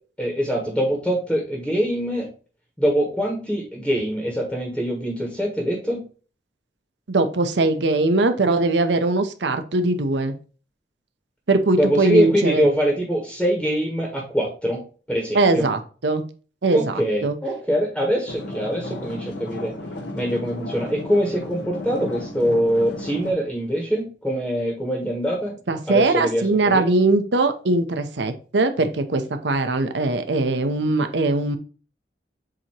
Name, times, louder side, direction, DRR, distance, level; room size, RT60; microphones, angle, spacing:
voice 1, 0.2-2.3 2.8-6.0 11.8-14.8 15.1-15.7 16.7-19.7 20.1-25.5 25.9-26.9, equal, 5° left, -1 dB, 1.4 m, -23 dB
voice 2, 7.1-10.3 11.5-12.7 15.3-16.2 16.6-16.9 17.2-17.4 25.7-31.6, right 2 dB, 80° right, 8 dB, 0.8 m, -21 dB
sound 1, 18.3-23.3, left 1 dB, 90° left, 1.1 m, -34 dB
7.4 x 2.9 x 4.4 m, 0.37 s
head